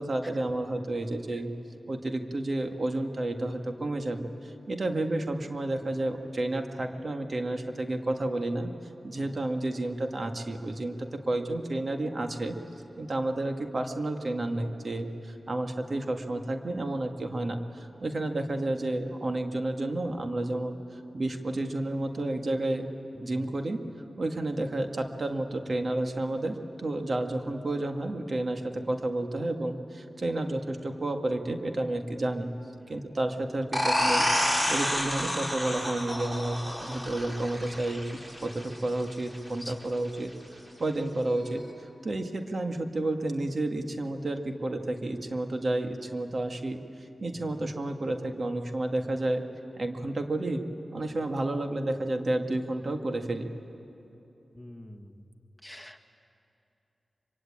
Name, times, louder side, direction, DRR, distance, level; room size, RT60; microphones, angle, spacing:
voice 1, 0.0-1.5 1.9-8.7 9.0-12.6 13.0-20.8 21.1-22.9 23.2-23.8 24.2-32.5 32.9-38.0 38.4-46.8 47.2-49.4 49.8-50.6 50.9-53.5, right 2 dB, 55° right, 5 dB, 1.9 m, -31 dB
sound 1, 33.7-39.1, equal, 25° right, 6.5 m, -29 dB
voice 2, 54.6-55.0 55.6-56.0, left 1 dB, 10° left, 6 dB, 1.6 m, -45 dB
24.0 x 23.0 x 8.8 m, 2.9 s
cardioid pair, 45°, 0 cm